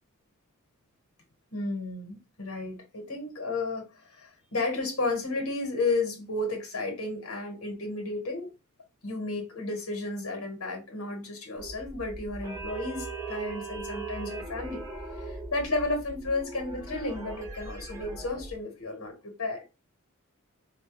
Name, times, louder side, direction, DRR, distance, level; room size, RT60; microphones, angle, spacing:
voice 1, 1.5-8.5 9.0-14.8 15.1-19.6, left 2 dB, 90° left, 1.1 m, -33 dB
sound 1, 11.6-18.6, right 3 dB, 15° right, 1.2 m, -39 dB
4.1 x 2.2 x 2.9 m
head